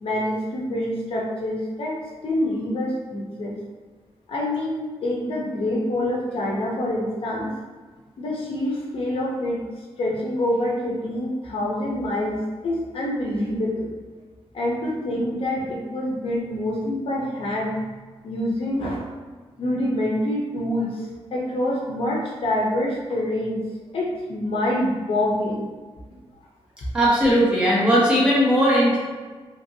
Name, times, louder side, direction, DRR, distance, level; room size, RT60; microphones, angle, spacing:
voice 1, 0.0-3.6 4.3-7.5 8.2-9.6 10.0-13.9 14.5-17.8 18.2-19.1 19.6-23.6 23.9-25.7, left 1 dB, 65° left, -2 dB, 0.5 m, -26 dB
voice 2, 26.9-29.0, equal, 10° right, -7 dB, 0.8 m, -18 dB
2.8 x 2.6 x 2.6 m, 1.4 s
wide cardioid pair, 160°, 10 cm